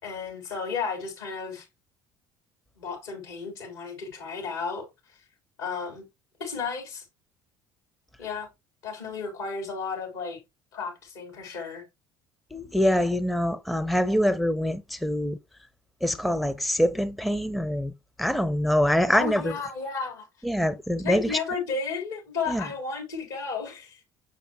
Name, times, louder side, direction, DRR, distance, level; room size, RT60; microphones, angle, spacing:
voice 1, 0.0-1.7 2.8-4.9 5.6-6.1 6.4-7.0 8.2-8.5 8.8-10.4 10.7-11.9 19.1-20.3 21.0-24.0, left 5 dB, 75° left, 3.4 m, -33 dB
voice 2, 12.5-15.4 16.0-17.9 18.2-19.5 20.4-21.4 22.5-22.6, equal, ahead, 0.6 m, -24 dB
6.6 x 6.3 x 2.9 m
figure-of-eight pair, 60°, 12 cm